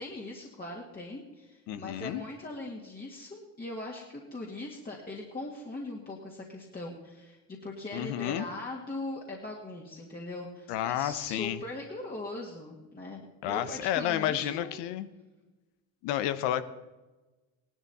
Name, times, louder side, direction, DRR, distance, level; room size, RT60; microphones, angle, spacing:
voice 1, 0.0-14.9, left 2 dB, 20° left, -2 dB, 2.1 m, -40 dB
voice 2, 1.7-2.2 7.9-8.4 10.7-11.6 13.4-15.1 16.0-16.6, left 11 dB, 80° left, 13 dB, 1.0 m, -31 dB
17.0 x 12.0 x 4.2 m, 1.2 s
supercardioid pair, 95°, 41 cm